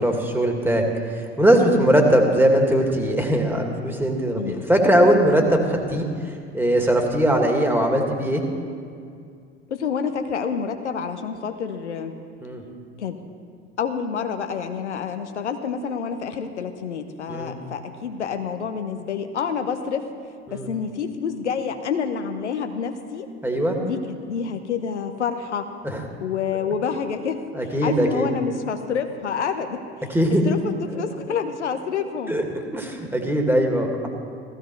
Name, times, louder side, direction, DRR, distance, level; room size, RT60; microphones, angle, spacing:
voice 1, 0.0-8.4 12.4-12.6 17.3-17.6 20.5-20.7 23.4-23.8 25.8-26.0 27.5-28.3 30.1-30.4 32.3-32.4 32.7-34.1, right 1 dB, 5° right, 2 dB, 2.3 m, -20 dB
voice 2, 9.7-12.1 13.0-13.2 13.8-20.1 20.5-23.3 23.8-25.7 26.2-27.4 27.8-29.8 30.4-32.3, left 6 dB, 80° left, 7 dB, 1.0 m, -28 dB
15.5 x 15.0 x 4.6 m, 2.3 s
figure-of-eight pair, 70°, 34 cm